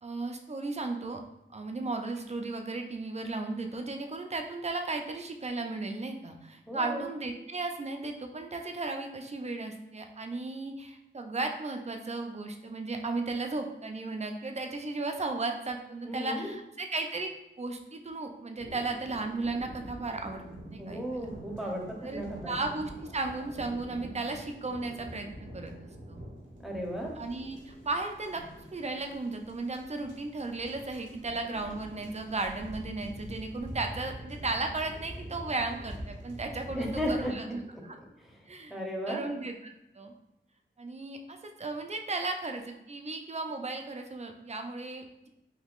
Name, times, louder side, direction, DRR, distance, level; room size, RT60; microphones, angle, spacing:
voice 1, 0.0-1.2 1.5-17.3 17.6-20.4 20.7-21.3 22.0-26.2 27.2-28.4 28.7-38.0 38.5-38.8 39.1-40.1 40.8-45.3, right 3 dB, 35° right, 4 dB, 0.4 m, -35 dB
voice 2, 6.7-7.1 16.0-16.5 20.8-22.6 26.6-27.1 36.7-37.3 38.2-39.2, equal, ahead, -1 dB, 0.7 m, -35 dB
sound 1, 18.6-37.3, equal, 85° right, 0.7 m, -45 dB
3.5 x 2.7 x 2.4 m, 0.90 s
wide cardioid pair, 70°, 20 cm